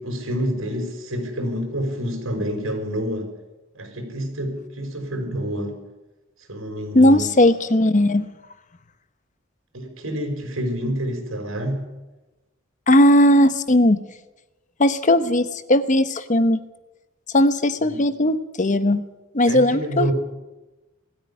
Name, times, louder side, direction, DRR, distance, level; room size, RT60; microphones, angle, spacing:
voice 1, 0.0-3.3 3.7-5.8 6.5-7.3 9.7-11.9 17.8-18.0 19.5-20.1, equal, 90° right, 5 dB, 5.4 m, -28 dB
voice 2, 6.9-8.3 12.9-14.0 14.8-16.6 17.3-19.0 19.3-20.1, left 1 dB, 40° left, 12 dB, 1.0 m, -17 dB
20.0 x 14.0 x 9.9 m, 1.1 s
head